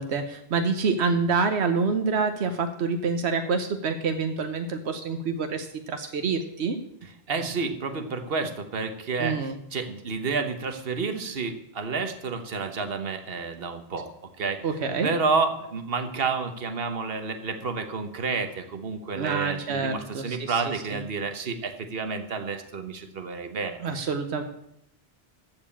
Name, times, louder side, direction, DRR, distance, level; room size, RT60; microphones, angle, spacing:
voice 1, 0.0-6.8 9.2-9.5 14.6-15.1 19.1-20.6 20.9-21.0 23.8-24.4, right 4 dB, 85° right, 7 dB, 1.1 m, -27 dB
voice 2, 7.0-14.1 14.4-14.6 15.0-23.8, right 4 dB, 65° right, 7 dB, 1.4 m, -30 dB
14.5 x 4.9 x 8.5 m, 0.78 s
omnidirectional pair, 1.1 m